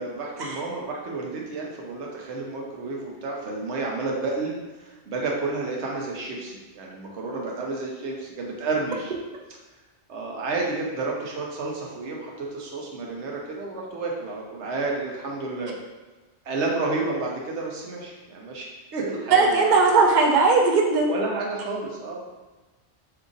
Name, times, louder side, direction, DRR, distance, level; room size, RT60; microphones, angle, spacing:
voice 1, 0.0-9.1 10.1-15.8 16.4-19.7 21.1-22.3, right 3 dB, 90° right, -1 dB, 1.0 m, -31 dB
voice 2, 19.3-21.1, right 4 dB, 55° right, 0 dB, 0.5 m, -18 dB
2.8 x 2.5 x 3.8 m, 1.2 s
omnidirectional pair, 1.1 m